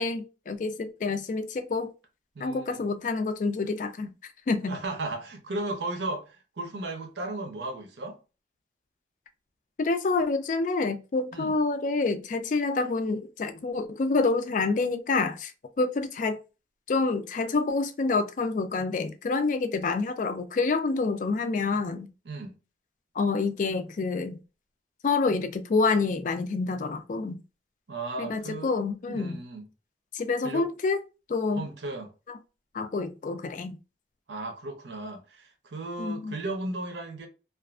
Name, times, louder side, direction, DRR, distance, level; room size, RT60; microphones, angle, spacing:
voice 1, 0.0-1.9 2.4-4.1 4.5-4.7 9.8-15.5 15.8-16.4 16.9-22.1 23.2-24.4 25.0-27.4 28.2-29.4 30.1-31.0 31.3-31.6 32.7-33.8 36.0-36.4, left 3 dB, 45° left, 0.3 m, -27 dB
voice 2, 2.3-2.8 4.7-8.2 11.3-11.5 22.2-22.6 27.9-28.7 29.1-29.7 30.4-30.7 31.6-32.1 34.3-37.3, right 2 dB, 75° right, 0.6 m, -35 dB
2.5 x 2.4 x 2.3 m
head